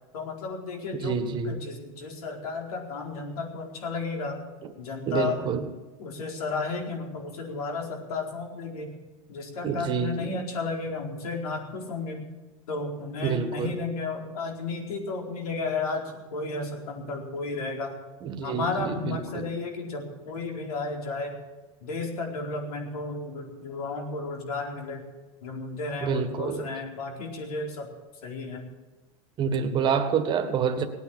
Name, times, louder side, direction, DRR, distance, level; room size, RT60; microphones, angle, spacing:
voice 1, 0.1-4.4 4.8-5.6 6.0-9.0 9.3-12.2 12.7-17.9 18.4-21.3 21.8-25.0 25.4-27.9 28.2-28.6 29.4-29.8, left 3 dB, 85° left, 2 dB, 4.4 m, -33 dB
voice 2, 0.9-1.5 5.1-5.7 9.6-10.4 13.2-13.7 18.2-19.5 26.0-26.6 29.4-30.8, right 7 dB, 25° right, 6 dB, 1.6 m, -28 dB
18.5 x 9.3 x 7.4 m, 1.2 s
supercardioid pair, 155°, 19 cm